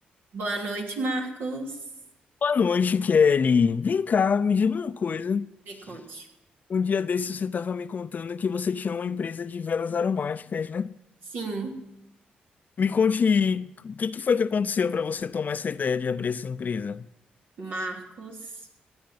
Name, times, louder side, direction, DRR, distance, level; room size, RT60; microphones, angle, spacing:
voice 1, 0.3-1.8 5.7-6.3 11.3-11.8 17.6-18.7, right 2 dB, 70° right, 2.9 m, -32 dB
voice 2, 2.4-5.5 5.9-6.0 6.7-10.9 12.8-17.0, left 6 dB, 50° left, 0.5 m, -25 dB
16.5 x 9.5 x 5.9 m
supercardioid pair, 55°, 4 cm